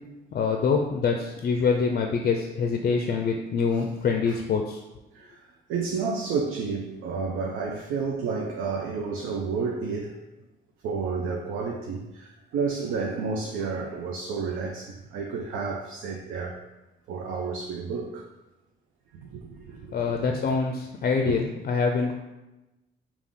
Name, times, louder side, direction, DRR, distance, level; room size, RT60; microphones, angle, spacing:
voice 1, 0.3-4.8 19.9-22.1, left 5 dB, 45° left, 3 dB, 0.4 m, -25 dB
voice 2, 5.7-10.1 10.8-16.6 17.1-18.3 19.3-20.3 21.2-21.4, right 5 dB, 85° right, 1 dB, 0.5 m, -31 dB
3.5 x 2.4 x 3.7 m, 1.0 s
cardioid pair, 90°, 20 cm